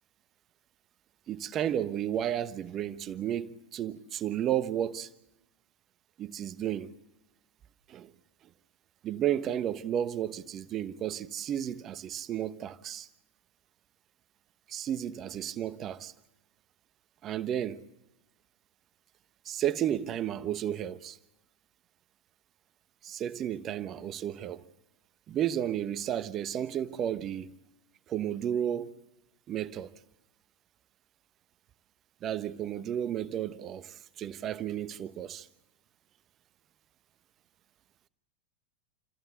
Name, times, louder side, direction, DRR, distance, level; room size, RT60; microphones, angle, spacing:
voice 1, 1.3-5.1 6.2-6.9 7.9-8.1 9.0-13.1 14.7-16.1 17.2-17.8 19.4-21.2 23.0-24.7 25.3-27.5 28.1-28.9 29.5-29.9 32.2-35.5, right 10 dB, 30° right, 1.0 m, -32 dB
29.0 x 14.5 x 8.0 m
figure-of-eight pair, 90°, 0 cm